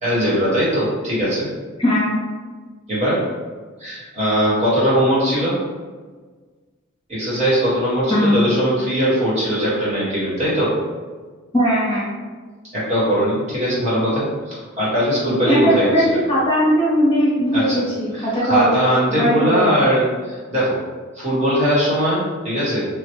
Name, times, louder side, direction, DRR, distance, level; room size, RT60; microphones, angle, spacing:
voice 1, 0.0-1.5 2.9-3.2 3.8-5.5 7.1-10.7 12.7-16.0 17.5-17.8 18.1-20.8 21.1-22.9, equal, 30° right, -7 dB, 1.1 m, -20 dB
voice 2, 1.8-2.1 8.1-8.4 11.5-12.1 15.5-18.7 19.1-19.7, equal, 20° left, -7 dB, 0.7 m, -18 dB
3.1 x 2.1 x 3.0 m, 1.4 s
head